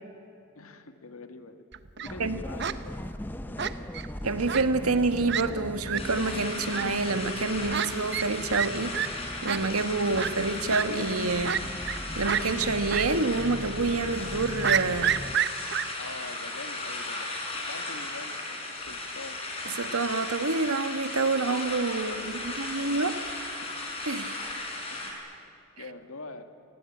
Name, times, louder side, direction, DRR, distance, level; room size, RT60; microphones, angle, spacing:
voice 1, 0.5-1.6 2.0-3.9 16.0-17.3 17.7-19.4 22.0-23.0 23.6-23.7 24.9-25.2 25.8-26.4, left 3 dB, 80° left, 7 dB, 2.0 m, -45 dB
Fowl, 1.7-2.1 2.6-2.8 3.6-4.1 4.5-4.6 4.9-5.0 5.3-5.4 5.9-6.0 6.7-6.8 7.7-7.9 8.1-8.3 8.5-8.7 8.9-9.1 9.5-9.6 10.2-10.3 10.7-10.8 11.4-12.0 12.3-12.4 12.9-13.1 13.4-13.5 14.6-15.8, right 9 dB, 50° right, 0.9 m, -28 dB
sound 1, 2.1-15.4, left 1 dB, 10° left, 0.7 m, -39 dB
voice 2, 4.2-9.0 9.4-11.6 12.1-15.2 19.8-23.2 24.0-24.4, right 3 dB, 85° right, 10 dB, 1.4 m, -27 dB
sound 2, 6.0-25.1, left 2 dB, 25° left, 5.2 m, -36 dB
29.0 x 20.0 x 8.8 m, 2.6 s
head